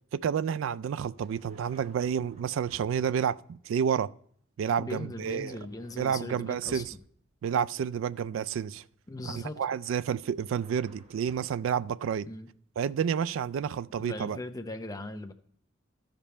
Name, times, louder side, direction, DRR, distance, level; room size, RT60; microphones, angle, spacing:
voice 1, 0.1-4.1 4.6-5.6 6.0-6.8 7.4-8.8 9.2-12.3 12.8-14.4, right 8 dB, 80° right, 0.3 m, -30 dB
sound 1, 1.2-3.2 5.2-7.3 10.2-11.7 12.0-12.2, right 3 dB, 35° right, 1.1 m, -56 dB
voice 2, 4.8-7.0 9.1-9.6 12.3-12.5 14.0-15.3, left 2 dB, 20° left, 0.6 m, -39 dB
13.0 x 5.2 x 4.3 m
head